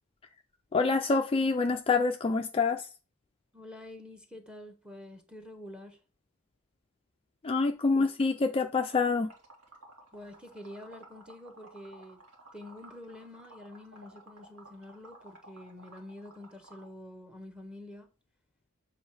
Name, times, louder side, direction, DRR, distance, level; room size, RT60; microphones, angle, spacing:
voice 1, 0.7-2.9 7.4-9.3, left 4 dB, 25° left, 0.3 m, -26 dB
voice 2, 3.5-6.0 7.9-8.1 8.4-8.5 10.1-12.2 12.5-18.1, left 1 dB, 5° right, 1.1 m, -47 dB
Liquid, 8.9-16.9, right 2 dB, 80° right, 1.9 m, -54 dB
7.3 x 3.4 x 4.7 m
head